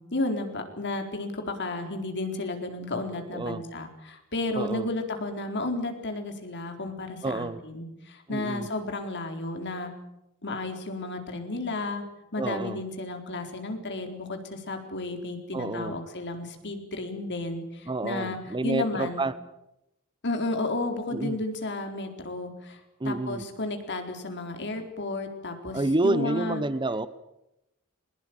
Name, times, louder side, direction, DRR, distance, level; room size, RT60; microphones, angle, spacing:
voice 1, 0.0-9.9 10.4-12.0 12.3-19.2 20.2-26.6, left 2 dB, 55° left, 5 dB, 4.1 m, -33 dB
voice 2, 4.6-4.9 7.2-7.6 8.3-8.7 12.4-12.8 15.5-16.0 17.9-19.4 21.1-21.4 23.0-23.4 25.7-27.1, right 2 dB, 20° right, 15 dB, 0.8 m, -29 dB
21.5 x 20.5 x 8.9 m, 0.87 s
head